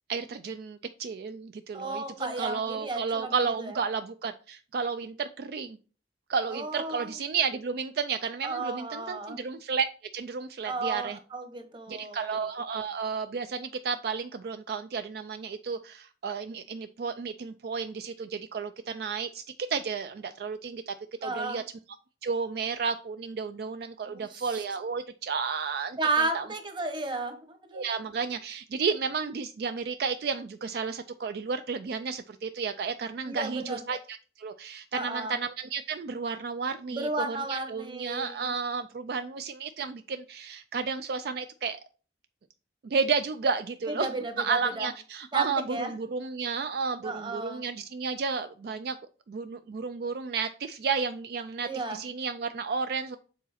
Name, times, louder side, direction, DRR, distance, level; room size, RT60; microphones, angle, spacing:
voice 1, 0.1-5.8 6.3-9.8 10.1-11.2 11.9-19.4 19.7-20.9 21.2-21.6 22.2-26.0 26.3-26.5 27.7-41.8 42.8-44.1 44.4-49.0 49.3-53.2, right 5 dB, 60° right, 10 dB, 0.3 m, -32 dB
voice 2, 1.7-3.8 6.5-7.2 8.4-9.4 10.6-12.4 21.2-21.6 24.1-24.6 26.0-27.9 33.2-33.8 34.9-35.4 36.9-38.5 43.9-44.9 45.3-45.9 47.0-47.6 51.6-52.0, right 2 dB, 25° right, 6 dB, 1.0 m, -33 dB
7.0 x 4.0 x 4.2 m, 0.38 s
head